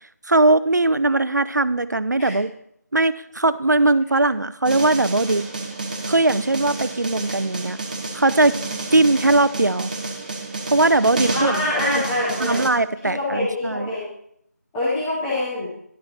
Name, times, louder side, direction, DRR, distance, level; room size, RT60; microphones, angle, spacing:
voice 1, 0.3-2.5 2.9-5.4 6.1-7.8 8.1-8.6 8.9-9.9 10.7-11.6 12.4-13.9, right 2 dB, 85° right, 15 dB, 0.6 m, -19 dB
sound 1, 4.6-12.7, right 3 dB, 30° right, 1.1 m, -30 dB
voice 2, 11.3-12.7 13.0-14.1 14.7-15.7, left 1 dB, 5° left, -8 dB, 0.6 m, -25 dB
11.0 x 7.6 x 4.2 m, 0.72 s
figure-of-eight pair, 170°, 9 cm